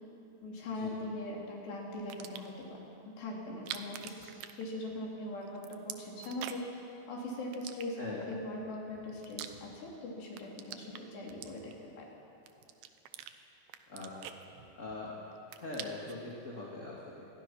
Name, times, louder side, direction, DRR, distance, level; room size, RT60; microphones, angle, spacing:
voice 1, 0.4-2.8 3.1-6.7 7.1-12.1, left 1 dB, 85° left, -2 dB, 5.4 m, -41 dB
sound 1, 2.0-2.6 3.5-5.2 5.4-6.8 7.5-8.3 8.9-10.0 10.3-12.0 12.5-13.3 13.7-15.0 15.3-16.2, right 10 dB, 75° right, 2.8 m, -46 dB
voice 2, 8.0-8.3 13.9-14.1 14.8-15.2 15.5-17.3, left 2 dB, 20° left, -5 dB, 2.6 m, -42 dB
26.5 x 21.5 x 6.0 m, 2.9 s
omnidirectional pair, 4.7 m